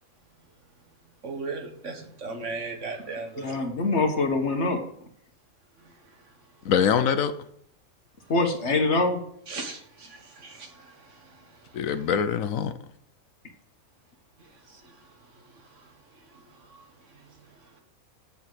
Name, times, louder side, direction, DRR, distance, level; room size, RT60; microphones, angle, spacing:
voice 1, 1.2-3.6 9.5-11.1 14.7-14.8, right 3 dB, 60° right, 4 dB, 1.8 m, -37 dB
voice 2, 3.4-4.9 8.3-9.2, left 3 dB, 55° left, 5 dB, 1.6 m, -24 dB
voice 3, 6.6-7.3 11.7-12.7, left 7 dB, 75° left, 11 dB, 1.1 m, -23 dB
7.1 x 7.0 x 7.8 m, 0.68 s
omnidirectional pair, 1.5 m